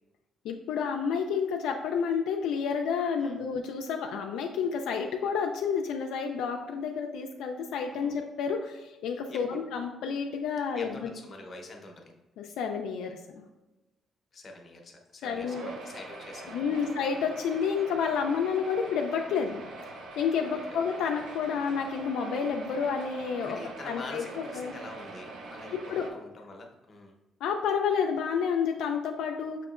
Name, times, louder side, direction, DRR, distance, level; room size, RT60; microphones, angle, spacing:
voice 1, 0.4-11.1 12.4-13.4 15.2-15.7 16.5-19.6 20.2-23.6 23.8-24.7 25.9-26.1 27.4-29.6, left 6 dB, 85° left, 3 dB, 0.3 m, -30 dB
voice 2, 7.8-8.2 9.3-9.6 10.8-12.1 14.3-16.9 20.7-20.8 23.4-27.1, left 2 dB, 40° left, 1 dB, 0.8 m, -45 dB
sound 1, 15.4-26.1, right 2 dB, 80° right, 0.6 m, -43 dB
5.8 x 2.9 x 2.4 m, 1.0 s
cardioid pair, 90°, 0 cm